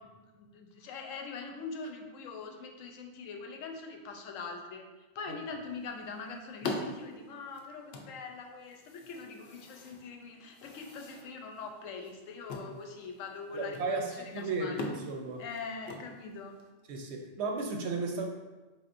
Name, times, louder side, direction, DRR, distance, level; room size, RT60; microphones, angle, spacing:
voice 1, 0.0-4.8 5.1-14.8 15.4-16.6, left 4 dB, 80° left, 3 dB, 1.0 m, -43 dB
sound 1, 5.6-16.7, left 2 dB, 65° left, 0.7 m, -44 dB
voice 2, 13.5-15.4 16.9-18.3, right 3 dB, 65° right, 2 dB, 0.8 m, -34 dB
4.2 x 3.5 x 2.5 m, 1.2 s
omnidirectional pair, 1.3 m